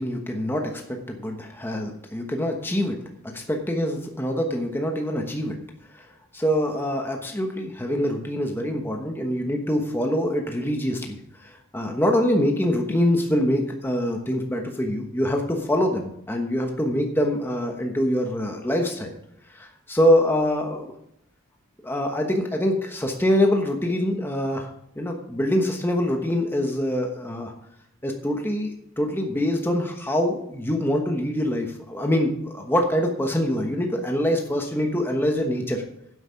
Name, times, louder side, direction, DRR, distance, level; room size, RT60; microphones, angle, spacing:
voice 1, 0.0-3.0 3.2-5.6 5.9-6.0 6.3-19.1 19.5-20.9 21.8-24.7 25.0-27.5 28.0-35.8, left 1 dB, 10° left, 2 dB, 1.1 m, -24 dB
10.0 x 8.3 x 5.2 m, 0.77 s
head